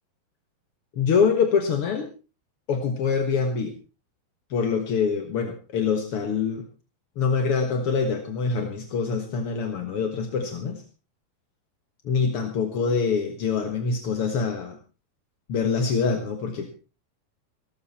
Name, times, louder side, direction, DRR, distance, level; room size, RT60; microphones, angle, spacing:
voice 1, 0.9-2.1 2.7-3.7 4.5-6.6 7.2-10.8 12.0-14.8 15.5-16.7, left 5 dB, 55° left, 5 dB, 1.7 m, -25 dB
17.5 x 14.0 x 4.3 m, 0.34 s
omnidirectional pair, 4.4 m